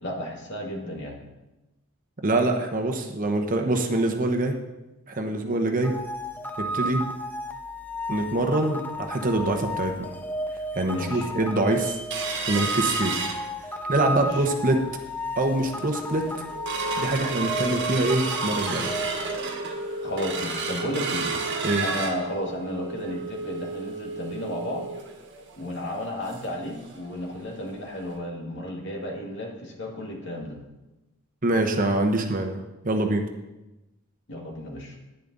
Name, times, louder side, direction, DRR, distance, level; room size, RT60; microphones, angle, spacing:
voice 1, 0.0-1.2 6.8-6.9 10.9-11.3 14.1-14.5 20.0-21.4 21.8-24.9 25.6-30.6 34.3-35.0, left 1 dB, 55° left, 0 dB, 2.1 m, -33 dB
voice 2, 2.2-4.5 5.1-5.9 6.6-7.0 8.1-10.1 10.7-12.0 12.5-13.2 13.9-14.8 15.4-16.3 17.0-18.9 21.6-21.9 31.4-32.6 32.8-33.3, right 2 dB, 40° right, 3 dB, 1.0 m, -24 dB
sound 1, 5.8-19.4, equal, 10° left, 0.6 m, -33 dB
sound 2, 12.1-14.0 14.4-14.5 14.8-15.2 15.6-15.7 16.1-26.6 26.9-27.0 27.4-27.6 28.1-28.2, right 4 dB, 55° right, 1.5 m, -31 dB
10.5 x 10.0 x 4.0 m, 1.0 s
head